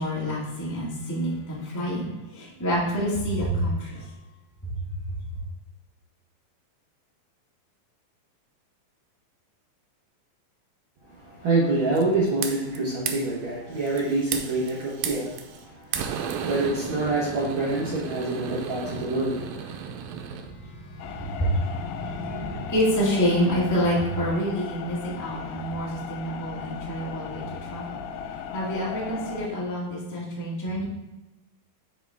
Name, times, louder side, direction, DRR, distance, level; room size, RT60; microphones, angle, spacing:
voice 1, 0.0-4.1 20.5-30.8, equal, 15° left, -6 dB, 0.7 m, -28 dB
voice 2, 11.0-19.5, right 2 dB, 60° right, -7 dB, 1.3 m, -26 dB
sound 1, 12.0-12.8 13.1-13.3 13.8-15.6 15.9-20.5, right 7 dB, 90° right, 2.4 m, -34 dB
sound 2, 21.0-29.5, left 7 dB, 85° left, 2.4 m, -37 dB
8.7 x 4.8 x 3.5 m, 1.0 s
omnidirectional pair, 4.1 m